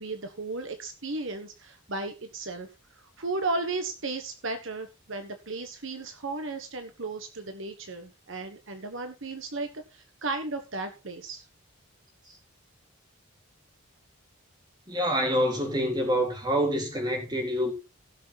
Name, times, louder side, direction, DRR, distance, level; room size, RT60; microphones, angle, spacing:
voice 1, 0.0-2.7 2.9-11.5, right 3 dB, 65° right, 1.4 m, -35 dB
voice 2, 14.9-17.7, equal, 20° right, 3.7 m, -26 dB
16.5 x 6.6 x 4.1 m
head